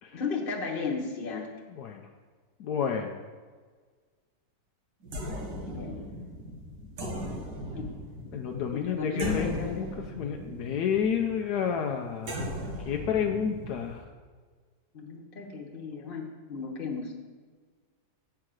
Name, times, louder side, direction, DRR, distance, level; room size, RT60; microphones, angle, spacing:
voice 1, 0.1-1.5 5.6-6.0 7.7-7.9 8.7-9.9 14.9-17.1, left 5 dB, 35° left, 0 dB, 1.2 m, -34 dB
voice 2, 1.7-2.1 2.6-3.2 8.3-9.9 10.1-12.5 12.9-14.0, left 7 dB, 75° left, 3 dB, 1.1 m, -30 dB
sound 1, 5.0-14.0, equal, 80° right, 2.1 m, -38 dB
8.8 x 4.7 x 6.3 m, 1.5 s
omnidirectional pair, 1.9 m